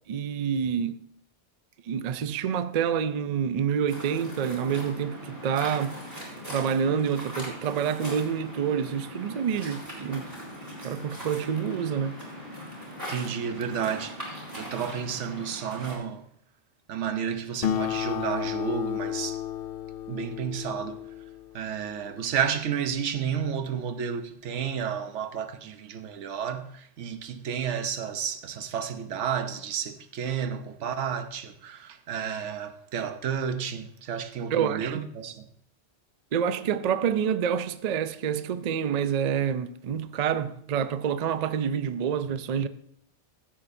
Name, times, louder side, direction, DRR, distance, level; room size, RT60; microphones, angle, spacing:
voice 1, 0.1-1.0 1.9-6.0 6.5-10.3 10.8-12.2 34.5-35.0 36.3-42.7, right 7 dB, 55° right, 0.4 m, -27 dB
Waves surf, 3.9-15.9, equal, 15° right, 4.0 m, -40 dB
voice 2, 13.1-16.2 16.9-19.4 20.1-21.0 21.5-35.5, right 7 dB, 85° right, 1.1 m, -31 dB
Acoustic guitar, 17.6-22.5, left 10 dB, 60° left, 0.8 m, -33 dB
15.5 x 8.6 x 2.7 m
omnidirectional pair, 1.2 m